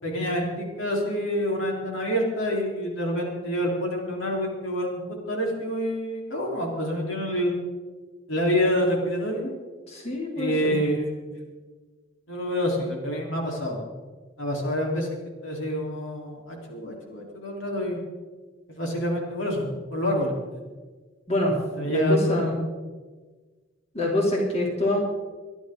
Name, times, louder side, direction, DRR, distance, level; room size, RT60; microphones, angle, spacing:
voice 1, 0.0-5.0 5.3-7.6 8.3-9.5 10.3-11.1 12.3-13.8 14.4-15.1 15.4-18.0 18.7-20.3 21.7-22.5, equal, 80° left, -1 dB, 3.9 m, -27 dB
voice 2, 9.9-10.8 21.3-21.6 21.8-22.6 23.9-25.0, left 1 dB, 35° left, -2 dB, 3.0 m, -25 dB
24.0 x 11.5 x 3.8 m, 1.4 s
head